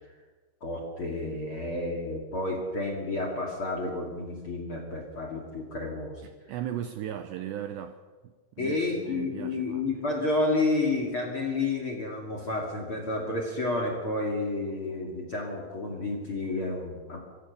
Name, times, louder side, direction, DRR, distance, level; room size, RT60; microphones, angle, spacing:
voice 1, 0.6-6.3 8.6-17.2, left 2 dB, 35° left, 2 dB, 2.3 m, -30 dB
voice 2, 6.2-8.0 8.2-9.8, right 10 dB, 80° right, 8 dB, 2.6 m, -37 dB
25.0 x 15.5 x 6.8 m, 1.4 s
omnidirectional pair, 5.8 m